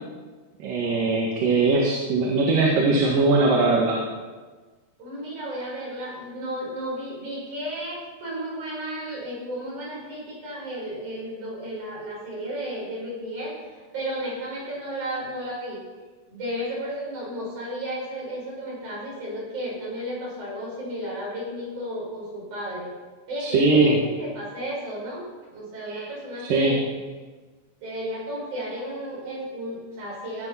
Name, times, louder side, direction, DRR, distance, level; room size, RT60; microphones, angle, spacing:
voice 1, 0.6-4.0 23.4-23.9 25.9-26.0 26.4-26.8, right 3 dB, 65° right, -2 dB, 3.2 m, -20 dB
voice 2, 5.0-15.8 16.3-22.9 23.3-25.2 25.5-26.9 27.8-30.5, equal, 50° right, -5 dB, 7.2 m, -33 dB
16.5 x 10.0 x 5.7 m, 1.3 s
omnidirectional pair, 4.4 m